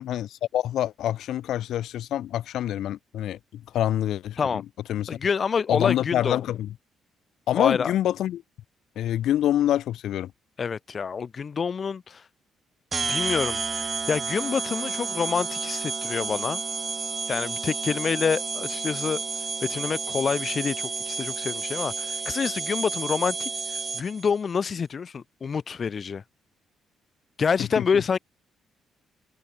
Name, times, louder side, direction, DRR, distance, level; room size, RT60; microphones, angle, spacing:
voice 1, 0.0-4.6 4.9-5.2 5.7-6.7 7.5-8.4 8.9-10.3 27.6-28.0, left 12 dB, 75° left, 1.3 m, -26 dB
voice 2, 5.1-6.4 7.5-7.9 10.6-12.2 13.1-16.6 17.3-19.2 19.6-23.5 23.9-26.2 27.4-28.2, left 6 dB, 45° left, 1.1 m, -27 dB
sound 1, 12.9-24.3, right 4 dB, 35° right, 2.2 m, -31 dB
cardioid pair, 90°, 0 cm